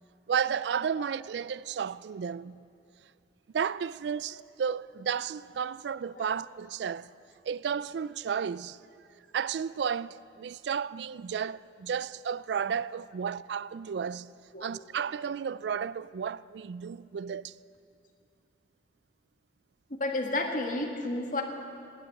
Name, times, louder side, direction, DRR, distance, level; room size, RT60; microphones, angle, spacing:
voice 1, 0.3-2.6 3.5-7.1 7.4-8.8 9.3-14.3 14.6-17.5, right 7 dB, 70° right, 0.3 m, -33 dB
voice 2, 20.0-21.4, left 2 dB, 50° left, 1.7 m, -31 dB
18.5 x 10.0 x 7.7 m
head